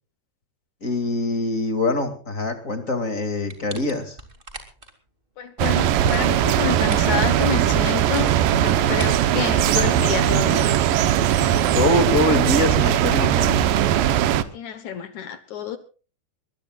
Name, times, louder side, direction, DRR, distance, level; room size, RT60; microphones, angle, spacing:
voice 1, 0.8-4.2 11.7-13.7, left 2 dB, 25° left, 7 dB, 1.9 m, -24 dB
sound 1, 3.5-4.9 5.7-7.2 7.9-9.9, right 2 dB, 20° right, 1.7 m, -41 dB
voice 2, 5.4-10.8 14.5-15.8, left 8 dB, 65° left, 10 dB, 2.0 m, -29 dB
sound 2, 5.6-14.4, right 11 dB, 70° right, 2.2 m, -19 dB
22.0 x 21.0 x 2.4 m, 0.36 s
omnidirectional pair, 4.9 m